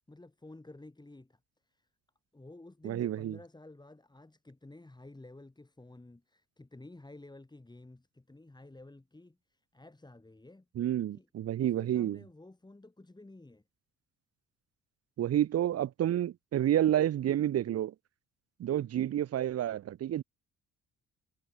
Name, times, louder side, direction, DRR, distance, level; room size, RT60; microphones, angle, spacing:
voice 1, 0.1-1.4 1.7-1.9 2.3-10.7 11.1-11.3 11.6-13.6, left 2 dB, 15° left, 7.2 m, -52 dB
voice 2, 2.8-3.4 10.8-12.2 15.2-17.9 18.6-20.2, right 11 dB, 55° right, 0.8 m, -29 dB
cardioid pair, 90°, 30 cm